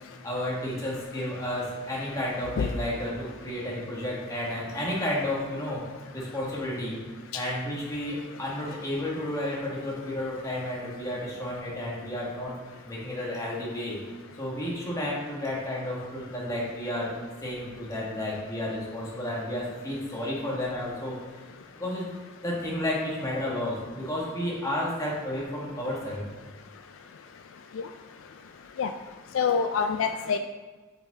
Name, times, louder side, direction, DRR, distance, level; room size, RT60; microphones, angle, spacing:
voice 1, 0.2-5.8 6.1-7.0 7.3-12.5 12.8-14.0 14.4-17.1 17.4-21.1 21.7-22.1 22.4-26.2, left 1 dB, 15° left, -5 dB, 1.6 m, -32 dB
voice 2, 29.3-30.4, left 6 dB, 70° left, 7 dB, 0.3 m, -26 dB
5.3 x 4.8 x 4.0 m, 1.3 s
head